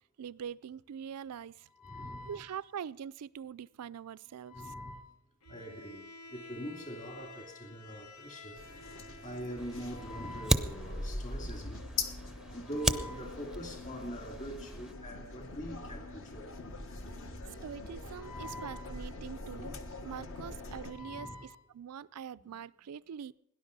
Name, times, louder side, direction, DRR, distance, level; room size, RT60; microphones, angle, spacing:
voice 1, 0.2-1.7 2.3-4.6 17.6-19.8 20.0-23.3, right 8 dB, 90° right, 0.4 m, -43 dB
voice 2, 1.7-2.5 4.4-5.1 5.5-8.7 9.2-11.9 12.5-16.6 17.1-17.2 18.1-19.0 19.6-19.7 20.7-21.5 22.4-22.5, equal, 35° left, 3.0 m, -43 dB
Bowed string instrument, 5.4-11.0, left 2 dB, 80° left, 1.1 m, -52 dB
sound 1, 8.5-20.9, left 3 dB, 60° left, 1.4 m, -43 dB
Fire, 9.6-14.9, right 1 dB, ahead, 0.5 m, -36 dB
18.0 x 10.5 x 5.4 m
head